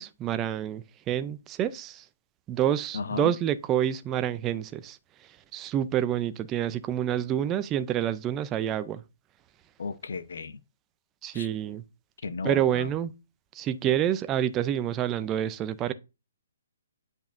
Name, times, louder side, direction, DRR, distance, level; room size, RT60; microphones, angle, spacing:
voice 1, 0.0-2.0 2.5-5.0 5.5-9.0 11.2-11.8 12.4-13.1 13.5-15.9, right 10 dB, 20° right, 0.5 m, -28 dB
voice 2, 2.9-3.3 9.8-10.6 11.3-11.5 12.2-12.9, left 4 dB, 70° left, 0.9 m, -34 dB
9.1 x 5.4 x 2.6 m
hypercardioid pair, 145°, 0 cm